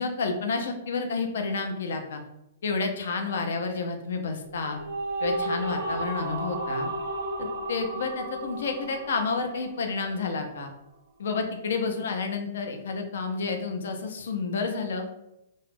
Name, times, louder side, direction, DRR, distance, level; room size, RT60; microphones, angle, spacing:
voice 1, 0.0-2.2 2.6-4.8 5.2-6.9 7.4-10.7 11.2-15.1, left 4 dB, 75° left, 5 dB, 0.4 m, -30 dB
sound 1, 4.5-10.0, right 2 dB, 60° right, 0.5 m, -33 dB
2.2 x 2.0 x 3.1 m, 0.85 s
hypercardioid pair, 160°, 0 cm